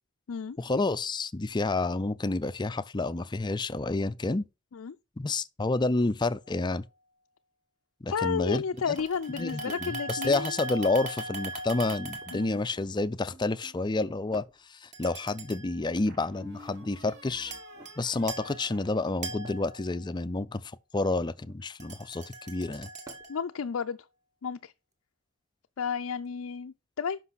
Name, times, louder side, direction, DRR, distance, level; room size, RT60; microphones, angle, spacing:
voice 1, 0.6-4.5 5.2-6.9 8.0-9.0 9.3-17.5 18.0-22.9, left 2 dB, 20° left, 0.4 m, -29 dB
sound 1, 6.5-6.7 8.8-12.7 14.9-15.8 17.4-18.0 18.3-20.2 21.8-23.5, right 2 dB, 35° right, 2.0 m, -40 dB
voice 2, 8.1-10.6 12.3-12.6 23.3-24.0 24.4-24.7 25.8-27.2, left 6 dB, 80° left, 0.5 m, -32 dB
sound 2, 9.0-9.3 10.4-10.9 11.9-13.0 14.3-14.8 15.9-17.0 17.6-18.0 19.4-19.7 21.3-21.7 23.0-23.5 24.9-25.0 26.2-26.3, right 2 dB, 15° right, 1.2 m, -52 dB
sound 3, 13.3-14.2 16.1-19.7, equal, 55° right, 3.2 m, -52 dB
11.5 x 5.3 x 4.0 m
head